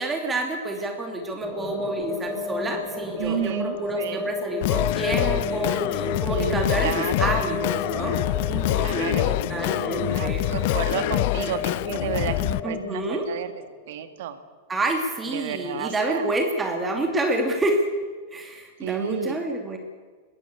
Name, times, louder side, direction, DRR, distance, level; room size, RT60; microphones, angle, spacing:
voice 1, 0.0-8.2 8.5-10.4 12.6-13.3 14.7-17.9 18.3-19.8, right 2 dB, 15° right, 3 dB, 2.7 m, -28 dB
sound 1, 1.4-13.9, left 2 dB, 5° left, 5.2 m, -33 dB
voice 2, 3.2-4.3 6.3-7.4 8.8-9.4 10.1-13.5 13.9-14.4 15.3-16.3 18.8-19.4, right 9 dB, 55° right, 10 dB, 1.8 m, -32 dB
Singing, 4.6-12.6, left 18 dB, 50° left, 0.6 m, -26 dB
21.5 x 16.5 x 8.4 m, 1.5 s
figure-of-eight pair, 90°, 0 cm